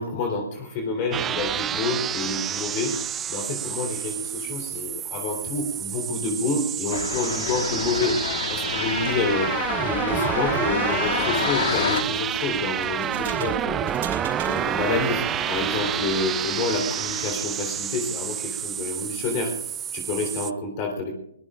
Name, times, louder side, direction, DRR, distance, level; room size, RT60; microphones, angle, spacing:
voice 1, 0.0-3.0 3.3-13.9 14.4-21.1, left 3 dB, 30° left, 3 dB, 3.9 m, -28 dB
sound 1, 1.1-20.5, right 10 dB, 15° right, 0.6 m, -29 dB
sound 2, 6.9-12.0, left 7 dB, 50° left, 1.6 m, -28 dB
sound 3, 11.7-17.3, right 6 dB, 40° right, 5.4 m, -37 dB
23.5 x 21.0 x 2.6 m, 0.80 s
figure-of-eight pair, 130°, 0 cm